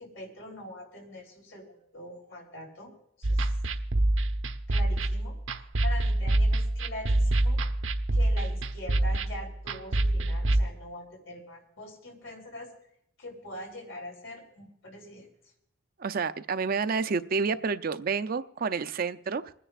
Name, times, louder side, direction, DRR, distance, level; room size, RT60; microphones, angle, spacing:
voice 1, 0.0-2.9 3.2-3.4 4.7-5.4 5.8-7.6 8.1-12.7 13.2-15.3, left 1 dB, 75° left, 1 dB, 3.4 m, -43 dB
sound 1, 3.2-10.6, right 1 dB, 80° right, 0.8 m, -26 dB
voice 2, 16.0-19.5, right 5 dB, 50° right, 11 dB, 0.5 m, -29 dB
28.0 x 10.0 x 2.4 m, 0.75 s
head